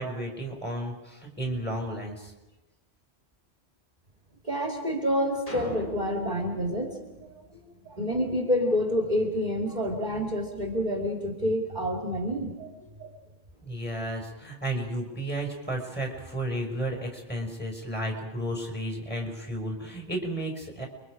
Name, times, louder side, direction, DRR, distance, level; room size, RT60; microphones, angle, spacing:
voice 1, 0.0-2.3 13.6-20.9, right 1 dB, 10° left, 0 dB, 5.4 m, -33 dB
voice 2, 4.4-7.3 7.8-12.7 13.0-13.1, equal, 35° right, 0 dB, 2.9 m, -28 dB
sound 1, 5.5-7.9, left 1 dB, 30° left, 4.9 m, -41 dB
30.0 x 23.5 x 5.0 m, 1.1 s
omnidirectional pair, 1.3 m